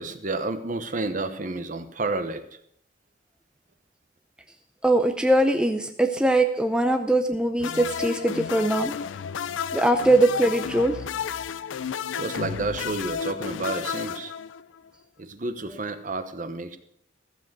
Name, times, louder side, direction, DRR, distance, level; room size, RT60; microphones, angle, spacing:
voice 1, 0.0-2.6 12.1-14.3 15.2-16.8, right 3 dB, 40° right, 9 dB, 1.0 m, -30 dB
voice 2, 4.8-8.9 9.7-11.0, right 1 dB, 5° right, 6 dB, 0.6 m, -21 dB
sound 1, 7.6-14.9, left 7 dB, 75° left, 0.4 m, -32 dB
14.5 x 7.5 x 6.1 m, 0.70 s
head